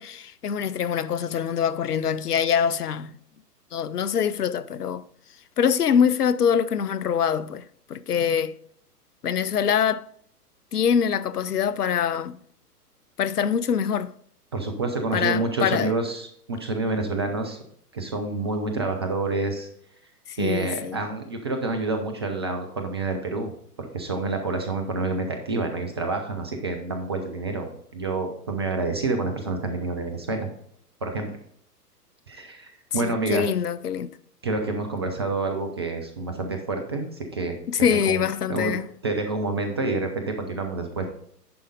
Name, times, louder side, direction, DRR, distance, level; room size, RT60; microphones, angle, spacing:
voice 1, 0.0-3.1 3.7-5.0 5.6-8.5 9.2-10.1 10.7-12.4 13.2-14.1 15.1-16.0 20.3-21.0 32.9-34.2 37.7-38.9, left 8 dB, 70° left, 0.7 m, -24 dB
voice 2, 14.5-17.6 17.9-19.7 20.4-23.5 23.8-30.5 31.0-31.3 32.3-33.5 34.4-38.2 38.5-38.7 39.0-41.1, right 3 dB, 20° right, 0.4 m, -28 dB
10.5 x 5.0 x 3.9 m
figure-of-eight pair, 115°, 48 cm